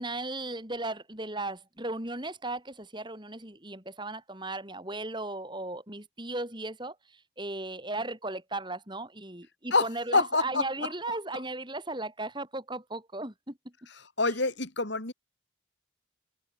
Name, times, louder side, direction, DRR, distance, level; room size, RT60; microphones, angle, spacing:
voice 1, 0.0-13.6 14.3-14.4, right 2 dB, 20° right, 4.3 m, -36 dB
voice 2, 9.7-10.9 14.2-15.1, left 3 dB, 60° left, 3.3 m, -27 dB
head